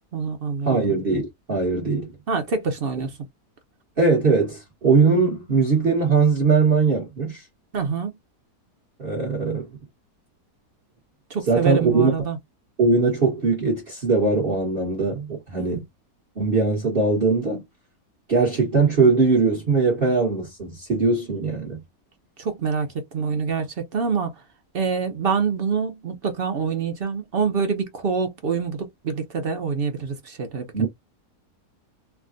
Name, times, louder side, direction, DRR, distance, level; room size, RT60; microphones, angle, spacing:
voice 1, 0.1-0.8 2.3-3.1 7.7-8.1 11.3-12.4 15.5-15.8 22.4-24.3 24.7-30.9, right 5 dB, 55° right, 0.7 m, -26 dB
voice 2, 0.6-2.1 4.0-7.4 9.0-9.7 11.5-12.1 12.8-15.8 16.4-17.6 18.3-21.8 30.7-30.9, right 4 dB, 35° right, 1.3 m, -20 dB
3.4 x 2.3 x 2.5 m
omnidirectional pair, 1.7 m